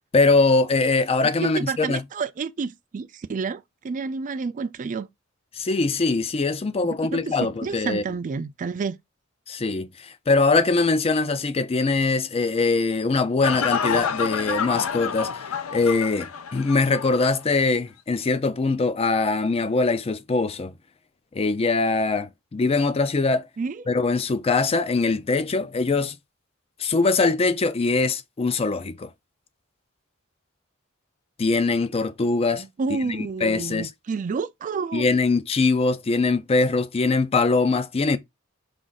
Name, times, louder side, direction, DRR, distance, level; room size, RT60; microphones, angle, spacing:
voice 1, 0.1-2.0 5.5-8.0 9.5-15.5 15.7-20.7 21.3-23.5 23.9-26.2 26.8-29.1 31.4-32.6 32.9-33.9 34.9-38.2, left 3 dB, 30° left, 0.4 m, -22 dB
voice 2, 1.2-5.1 6.8-9.0 23.6-23.8 32.5-35.1, right 4 dB, 40° right, 0.3 m, -30 dB
sound 1, 13.4-17.3 17.6-17.7, left 6 dB, 75° left, 0.5 m, -28 dB
4.8 x 2.5 x 3.9 m
head